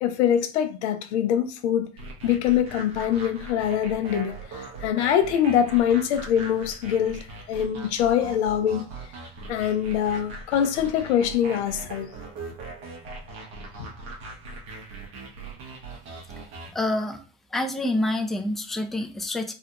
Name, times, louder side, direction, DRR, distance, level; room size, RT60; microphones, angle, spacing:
voice 1, 0.0-1.9 2.2-8.9 9.5-12.1 13.8-13.9, left 9 dB, 85° left, 0.6 m, -24 dB
sound 1, 2.0-16.7, right 3 dB, 70° right, 1.2 m, -40 dB
voice 2, 16.7-17.2 17.5-19.5, left 1 dB, ahead, 0.4 m, -27 dB
3.3 x 2.2 x 2.8 m
hypercardioid pair, 85°, 33 cm